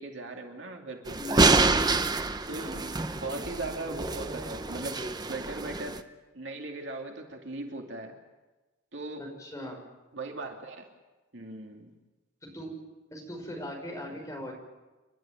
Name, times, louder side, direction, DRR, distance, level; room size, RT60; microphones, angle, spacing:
voice 1, 0.0-1.3 2.5-2.8 3.2-6.0 6.3-8.1 8.9-9.2 10.1-10.8 11.3-11.9, right 2 dB, 60° right, 2 dB, 2.6 m, -38 dB
sound 1, 1.1-6.0, right 3 dB, 20° right, 0.8 m, -27 dB
voice 2, 1.2-1.5 2.6-2.8 9.2-9.8 12.4-12.8 13.1-14.5, left 1 dB, 15° left, 0 dB, 5.6 m, -39 dB
29.5 x 12.5 x 9.0 m, 1.1 s
head